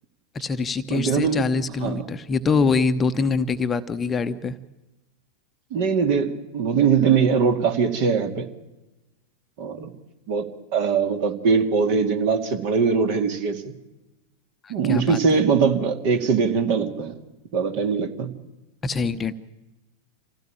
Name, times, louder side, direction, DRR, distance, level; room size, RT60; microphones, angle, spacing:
voice 1, 0.3-4.5 14.6-15.2 18.8-19.3, left 4 dB, 20° left, 9 dB, 0.9 m, -24 dB
voice 2, 0.9-1.4 1.8-2.0 5.7-8.5 9.6-9.9 10.3-10.5 10.7-13.7 14.7-17.1 17.5-18.3, right 5 dB, 45° right, 6 dB, 2.3 m, -21 dB
26.0 x 16.0 x 8.8 m, 1.1 s
figure-of-eight pair, 90°, 0 cm